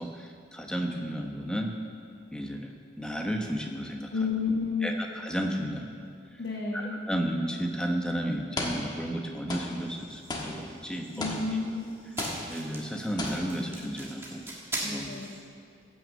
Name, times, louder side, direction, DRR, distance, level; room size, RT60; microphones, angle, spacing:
voice 1, 0.0-1.7 2.3-4.1 4.8-5.9 6.9-11.3 12.5-14.4 14.8-15.1, equal, 5° left, 2 dB, 1.0 m, -33 dB
voice 2, 4.1-4.9 6.4-6.9 11.2-11.8 14.8-15.3, left 4 dB, 65° left, -5 dB, 1.5 m, -30 dB
sound 1, 7.5-7.7 8.6-9.2 9.5-11.8 12.2-12.9 13.2-13.8, left 2 dB, 25° left, 1.3 m, -36 dB
sound 2, 9.5-15.4, right 1 dB, 15° right, 1.4 m, -42 dB
14.0 x 6.3 x 8.2 m, 2.3 s
head